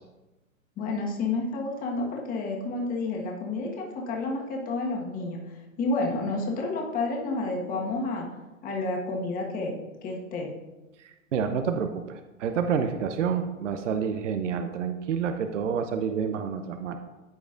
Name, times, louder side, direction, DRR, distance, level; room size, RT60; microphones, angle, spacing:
voice 1, 0.8-8.3 8.6-9.7 10.0-10.5, left 3 dB, 20° left, -1 dB, 1.5 m, -30 dB
voice 2, 11.0-17.0, right 7 dB, 60° right, 7 dB, 0.7 m, -29 dB
13.5 x 4.9 x 2.6 m, 1.1 s
hypercardioid pair, 125°, 41 cm